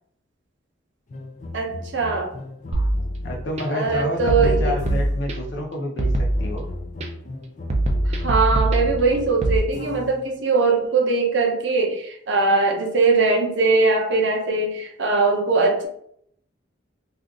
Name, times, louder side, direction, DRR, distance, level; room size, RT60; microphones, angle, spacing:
sound 1, 1.1-5.3 6.0-10.3, left 2 dB, 40° left, 0.3 m, -37 dB
voice 1, 1.5-2.3 3.7-4.7 8.1-15.9, right 3 dB, 75° right, 2 dB, 0.7 m, -21 dB
sound 2, 2.7-3.6 4.3-5.6 6.0-7.1 7.7-9.6, right 1 dB, 35° right, 0.4 m, -23 dB
voice 2, 3.2-6.7, left 1 dB, 70° left, 0 dB, 0.7 m, -29 dB
2.4 x 2.4 x 3.6 m, 0.67 s
head